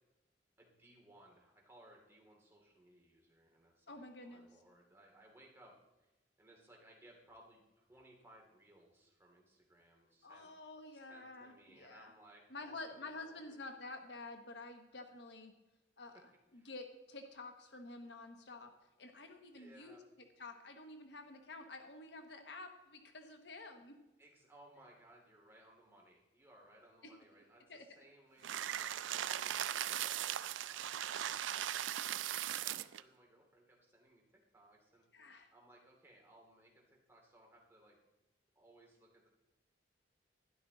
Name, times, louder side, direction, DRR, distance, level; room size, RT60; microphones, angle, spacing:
voice 1, 0.6-6.1 6.4-10.5 10.9-13.6 16.0-16.2 16.5-16.7 19.1-20.0 24.2-35.1 35.5-38.0 38.6-39.3, right 1 dB, 15° right, -1 dB, 2.5 m, -63 dB
voice 2, 3.9-4.5 10.2-12.1 12.5-15.5 16.0-16.2 16.5-18.7 19.0-20.0 20.4-24.0 27.7-27.8 35.1-35.5, left 2 dB, 65° left, 5 dB, 1.2 m, -50 dB
sound 1, 28.4-33.0, right 11 dB, 90° right, 0.4 m, -38 dB
12.5 x 11.0 x 3.9 m, 1.0 s
head